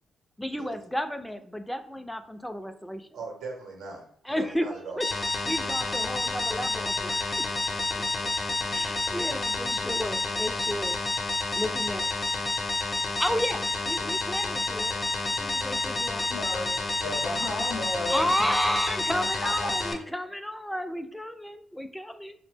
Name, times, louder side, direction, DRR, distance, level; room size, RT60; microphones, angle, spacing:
voice 1, 0.4-3.1 4.2-5.1 5.4-7.2 8.7-11.0 11.6-12.1 13.2-15.0 15.4-16.3 18.1-22.3, equal, 5° left, 8 dB, 0.4 m, -32 dB
voice 2, 3.1-5.1, right 3 dB, 80° right, 2 dB, 0.7 m, -39 dB
sound 1, 5.0-19.9, left 3 dB, 40° left, 0.6 m, -29 dB
voice 3, 16.3-18.3 19.4-19.8, left 2 dB, 85° left, 0 dB, 0.7 m, -33 dB
2.6 x 2.0 x 3.3 m, 0.65 s
supercardioid pair, 50°, 0 cm